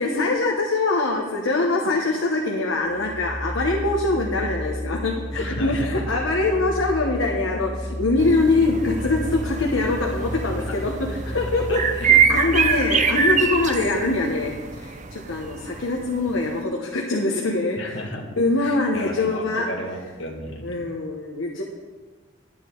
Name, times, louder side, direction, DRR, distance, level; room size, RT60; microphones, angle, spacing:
voice 1, 0.0-18.0 18.4-19.7 20.6-21.6, left 2 dB, 85° left, 0 dB, 1.2 m, -23 dB
sound 1, 2.8-14.6, equal, 70° right, 3.0 m, -33 dB
voice 2, 5.3-6.0 10.7-10.8 11.7-12.2 17.8-20.8, left 1 dB, 65° left, 1 dB, 1.7 m, -34 dB
sound 2, 8.2-16.6, right 6 dB, 40° right, 0.6 m, -25 dB
11.0 x 9.2 x 4.7 m, 1.4 s
head